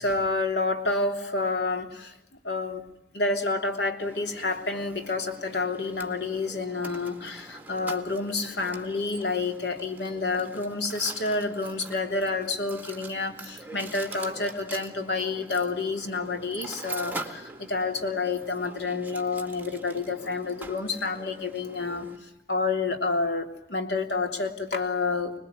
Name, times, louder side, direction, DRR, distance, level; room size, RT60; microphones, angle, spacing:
voice 1, 0.0-2.2 2.4-2.8 3.1-25.3, left 3 dB, 70° left, 6 dB, 3.2 m, -29 dB
Mechanisms, 4.0-22.2, right 2 dB, 10° right, 2.0 m, -44 dB
26.5 x 20.5 x 9.4 m, 0.80 s
head